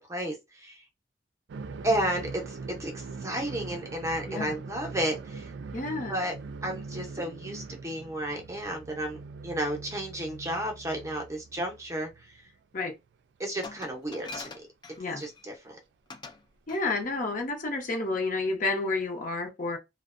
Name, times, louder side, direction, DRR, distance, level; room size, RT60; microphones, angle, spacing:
voice 1, 0.1-0.8 1.8-5.5 6.1-6.3 6.6-12.4 13.4-14.6 15.2-15.8, right 1 dB, 15° right, 0.6 m, -32 dB
sound 1, 1.5-12.5 12.8-12.9 14.1-14.2 15.7-15.8 17.3-17.4, right 4 dB, 75° right, 0.3 m, -42 dB
voice 2, 5.7-6.2 12.7-12.9 15.0-15.2 16.7-19.8, left 3 dB, 45° left, 0.7 m, -30 dB
Glass, 13.6-15.5 16.1-16.4 16.7-16.9, left 3 dB, 25° left, 0.3 m, -43 dB
2.5 x 2.1 x 2.4 m
head